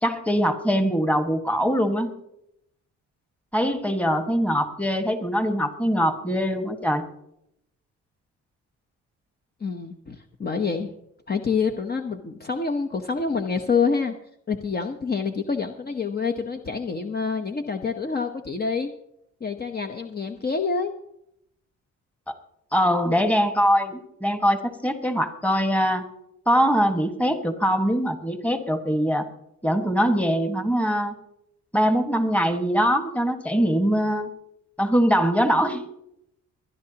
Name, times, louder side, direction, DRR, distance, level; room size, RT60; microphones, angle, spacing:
voice 1, 0.0-2.1 3.5-7.0 22.3-22.4 22.7-26.0 26.4-29.3 29.6-31.2 31.7-34.3 34.8-35.8, equal, 5° left, 6 dB, 1.6 m, -22 dB
voice 2, 9.6-10.9 11.3-14.1 14.5-18.9 19.4-20.9, left 5 dB, 30° left, 5 dB, 1.0 m, -27 dB
23.0 x 11.0 x 2.9 m, 0.79 s
cardioid pair, 90°, 30 cm